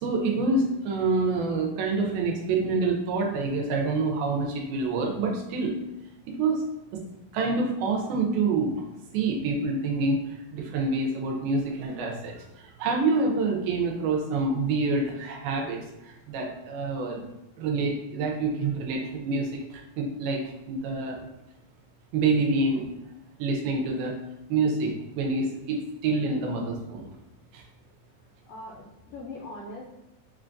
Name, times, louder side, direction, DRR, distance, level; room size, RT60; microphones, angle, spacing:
voice 1, 0.0-5.8 6.3-6.6 6.9-7.0 7.3-8.7 9.1-17.3 17.6-20.4 20.7-21.2 22.1-22.9 23.4-24.2 24.5-27.1 27.5-27.6, right 3 dB, 85° right, 1 dB, 2.4 m, -27 dB
voice 2, 28.5-29.9, left 2 dB, 85° left, -2 dB, 1.8 m, -41 dB
6.2 x 2.2 x 2.5 m, 0.94 s
omnidirectional pair, 4.3 m